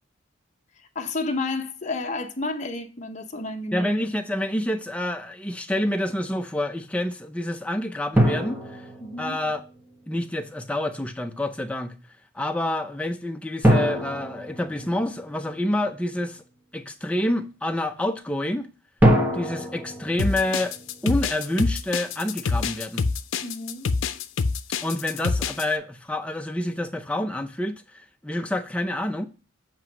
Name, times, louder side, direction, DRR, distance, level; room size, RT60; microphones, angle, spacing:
voice 1, 0.9-3.9 9.0-9.4 23.4-23.9, left 3 dB, 40° left, 0.8 m, -31 dB
voice 2, 3.7-8.8 9.2-9.6 10.1-11.9 12.3-16.4 16.7-18.7 19.3-20.7 21.0-23.0 24.8-29.3, left 1 dB, 5° left, 0.5 m, -28 dB
sound 1, 8.2-9.8 13.6-15.5 19.0-21.3, equal, 10° right, 0.9 m, -24 dB
sound 2, 20.2-25.6, left 4 dB, 90° left, 0.5 m, -26 dB
7.5 x 2.9 x 6.0 m
head